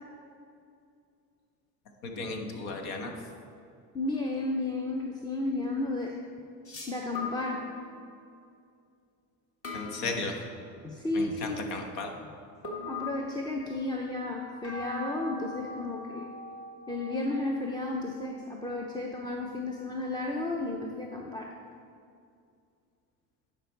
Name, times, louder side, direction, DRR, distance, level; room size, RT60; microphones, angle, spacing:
voice 1, 2.0-3.1 9.7-10.4 11.1-12.1, left 3 dB, 75° left, 3 dB, 1.3 m, -35 dB
voice 2, 3.9-6.2 6.9-7.7 10.8-11.7 12.8-16.3 16.9-21.5, left 2 dB, 10° left, 0 dB, 0.5 m, -33 dB
sound 1, 4.1-4.3 6.7-8.1 9.6-10.9 12.6-13.9 14.6-19.2, left 3 dB, 35° left, 1.6 m, -42 dB
10.0 x 5.1 x 4.5 m, 2.4 s
cardioid pair, 115°, 37 cm